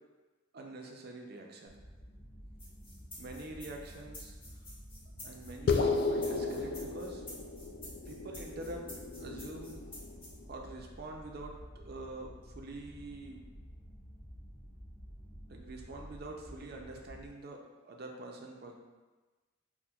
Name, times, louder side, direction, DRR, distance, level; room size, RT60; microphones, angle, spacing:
voice 1, 0.5-1.8 3.2-4.3 5.2-7.2 8.1-8.8 9.2-9.8 10.5-13.4 15.5-17.6 17.8-18.8, right 2 dB, 50° right, 1 dB, 0.4 m, -45 dB
sound 1, 1.7-17.3, equal, ahead, 0.6 m, -51 dB
sound 2, 2.6-10.3, left 1 dB, 25° left, 0.9 m, -50 dB
sound 3, 5.7-10.5, left 4 dB, 50° left, 0.3 m, -34 dB
5.7 x 2.1 x 2.3 m, 1.3 s
head